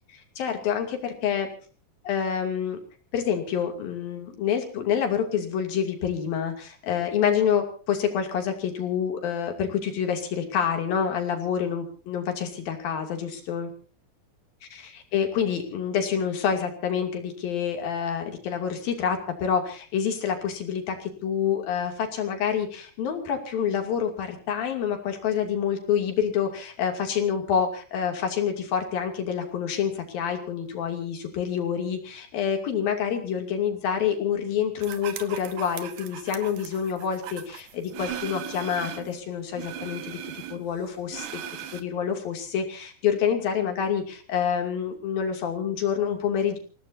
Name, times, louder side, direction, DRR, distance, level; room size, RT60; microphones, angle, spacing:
voice 1, 0.4-1.5 2.0-2.8 3.1-13.7 14.7-40.2 40.5-41.4 41.7-46.6, left 8 dB, 75° left, 4 dB, 4.5 m, -27 dB
sound 1, 34.8-39.2 39.5-41.8, right 11 dB, 70° right, 2.6 m, -38 dB
29.0 x 17.5 x 2.8 m, 0.39 s
omnidirectional pair, 4.2 m